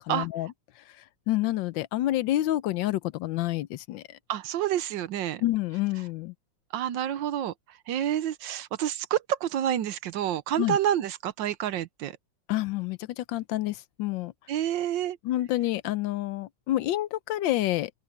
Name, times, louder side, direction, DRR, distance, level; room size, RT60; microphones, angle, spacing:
voice 1, 0.1-0.5 1.3-4.2 5.4-6.3 10.6-10.8 12.5-14.3 15.2-17.9, left 15 dB, 80° left, 1.3 m, -28 dB
voice 2, 4.3-5.4 6.7-7.5 7.9-12.1 14.5-15.2, right 11 dB, 80° right, 1.5 m, -28 dB
open air
omnidirectional pair, 2.0 m